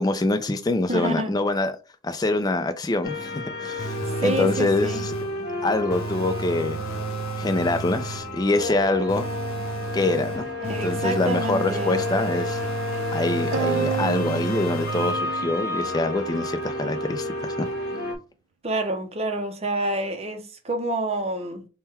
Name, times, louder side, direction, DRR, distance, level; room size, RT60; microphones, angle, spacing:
voice 1, 0.0-1.8 2.0-3.3 3.6-4.0 4.2-5.1 5.6-6.8 7.4-9.3 9.9-10.5 10.8-12.6 13.1-17.7, left 2 dB, 20° left, 0.3 m, -25 dB
voice 2, 0.9-1.3 4.1-5.1 10.6-12.0 18.6-21.7, right 1 dB, 30° right, 0.6 m, -28 dB
sound 1, 3.0-18.2, left 2 dB, 50° left, 1.1 m, -31 dB
sound 2, 3.8-5.5 5.9-8.4 9.1-15.5, right 3 dB, 85° left, 0.8 m, -33 dB
sound 3, 13.5-16.1, right 7 dB, 70° right, 0.3 m, -30 dB
3.6 x 2.2 x 4.2 m
head